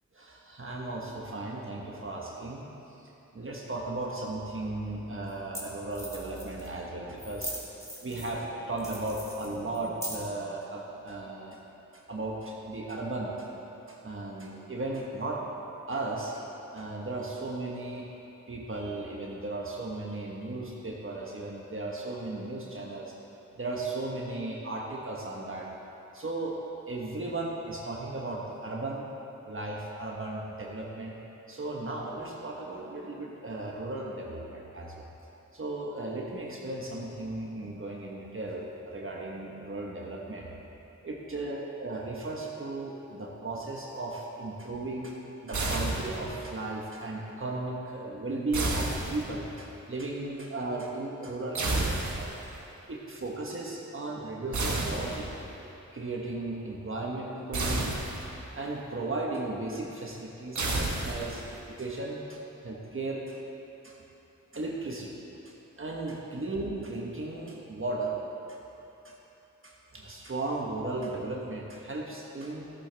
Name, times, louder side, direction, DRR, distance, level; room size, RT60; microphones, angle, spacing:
voice 1, 0.1-2.7 3.3-7.6 8.0-11.6 11.9-13.5 13.9-15.4 15.9-16.4 16.7-18.1 18.5-23.1 23.5-25.7 26.1-26.6 26.9-29.0 29.5-31.2 31.5-35.1 35.5-40.5 41.0-45.2 45.4-52.3 52.9-55.3 55.9-61.4 61.8-63.4 63.8-63.9 64.5-65.1 65.5-68.2 68.5-68.6 69.0-69.1 69.6-72.7, right 2 dB, 45° right, -2 dB, 1.3 m, -36 dB
sound 1, 5.3-5.4 5.5-5.6 5.9-6.7 7.2-8.4 8.8-10.4, equal, 10° left, 2.4 m, -40 dB
sound 2, 45.5-46.5 48.5-49.6 51.5-52.5 54.5-55.5 57.5-58.5 60.6-61.6, right 2 dB, 70° right, 1.5 m, -31 dB
14.0 x 8.5 x 3.4 m, 3.0 s
cardioid pair, 60°, 30 cm